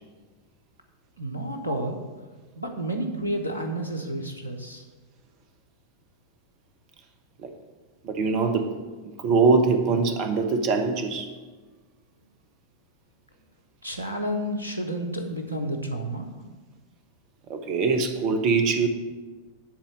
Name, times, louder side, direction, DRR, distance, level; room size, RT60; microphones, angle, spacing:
voice 1, 1.2-2.0 2.5-4.8 13.8-16.3, right 1 dB, 85° right, 4 dB, 1.1 m, -30 dB
voice 2, 8.0-8.7 9.2-11.3 17.5-18.9, right 4 dB, 40° right, 7 dB, 1.1 m, -22 dB
10.5 x 4.3 x 7.5 m, 1.3 s
figure-of-eight pair, 90°, 0 cm